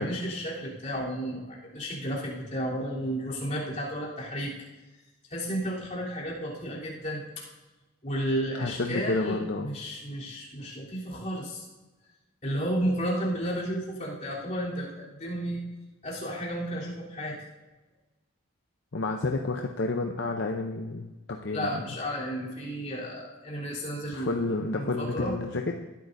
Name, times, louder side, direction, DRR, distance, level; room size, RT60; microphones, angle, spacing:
voice 1, 0.0-4.5 5.3-7.4 8.0-11.7 12.4-15.6 16.0-17.4 21.5-24.4 24.7-25.3, equal, 35° left, -6 dB, 3.4 m, -32 dB
voice 2, 8.5-9.7 18.9-21.8 24.1-25.8, left 3 dB, 60° left, 3 dB, 0.7 m, -30 dB
19.5 x 10.5 x 2.7 m, 1.1 s
head